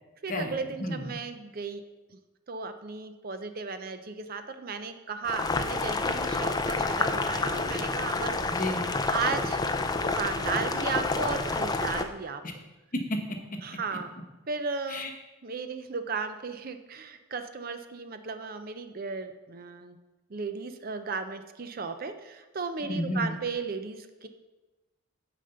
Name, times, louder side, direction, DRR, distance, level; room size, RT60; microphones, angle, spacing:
voice 1, 0.2-1.8 2.5-8.4 9.1-9.7 10.0-12.4 13.6-14.1 14.5-15.1 15.4-20.0 20.3-24.3, right 4 dB, 40° right, 8 dB, 0.5 m, -35 dB
Boiling, 5.2-12.0, left 3 dB, 20° left, 0.4 m, -29 dB
voice 2, 8.5-8.8 12.9-13.6 14.9-15.1 22.8-23.3, left 1 dB, 40° left, 4 dB, 1.0 m, -31 dB
9.0 x 5.1 x 6.8 m, 1.1 s
head